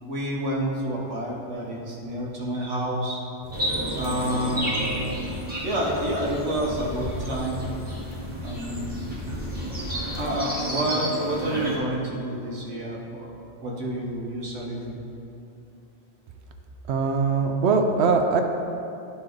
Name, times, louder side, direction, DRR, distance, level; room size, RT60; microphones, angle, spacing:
voice 1, 0.0-3.2 4.0-4.7 5.6-7.6 8.4-9.2 10.2-13.3 13.6-15.0, right 1 dB, 85° right, -3 dB, 1.5 m, -29 dB
sound 1, 3.4-10.4, left 2 dB, 40° left, 1.1 m, -37 dB
sound 2, 3.5-11.8, right 1 dB, 10° right, 1.3 m, -31 dB
voice 2, 16.9-18.4, right 5 dB, 70° right, 4 dB, 0.9 m, -21 dB
10.5 x 4.2 x 3.8 m, 2.7 s
omnidirectional pair, 1.2 m